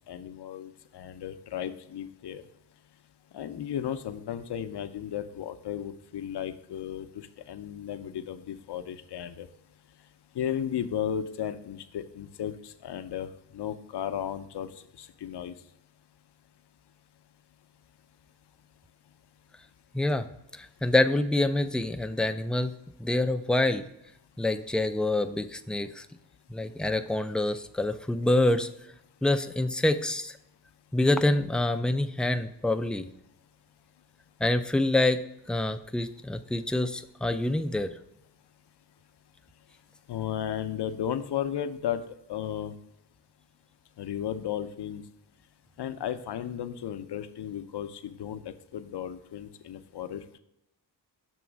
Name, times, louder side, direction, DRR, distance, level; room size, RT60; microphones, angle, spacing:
voice 1, 0.1-2.4 3.3-9.5 10.3-13.3 13.5-15.5 40.1-42.7 44.0-45.0 45.8-50.4, left 9 dB, 65° left, 10 dB, 0.6 m, -34 dB
voice 2, 19.9-20.3 20.5-22.7 23.0-23.8 24.4-26.1 26.5-28.7 29.2-30.4 30.9-33.1 34.4-35.2 35.5-37.9, left 2 dB, ahead, 9 dB, 0.3 m, -26 dB
7.1 x 3.0 x 6.0 m, 0.84 s
cardioid pair, 70°, 43 cm